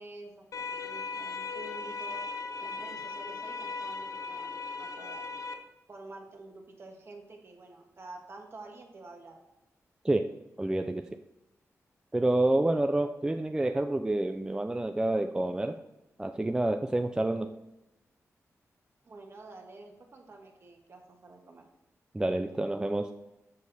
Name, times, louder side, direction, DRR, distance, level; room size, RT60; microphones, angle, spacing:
voice 1, 0.0-2.2 2.6-5.3 5.9-9.4 19.0-21.6, right 2 dB, 50° right, 2 dB, 1.4 m, -49 dB
sound 1, 0.5-5.5, left 4 dB, 90° left, 0.8 m, -38 dB
voice 2, 10.6-11.2 12.1-15.8 16.2-17.5 22.1-23.1, right 2 dB, 15° right, 6 dB, 0.3 m, -28 dB
7.3 x 6.3 x 4.0 m, 0.97 s
wide cardioid pair, 110°, 6 cm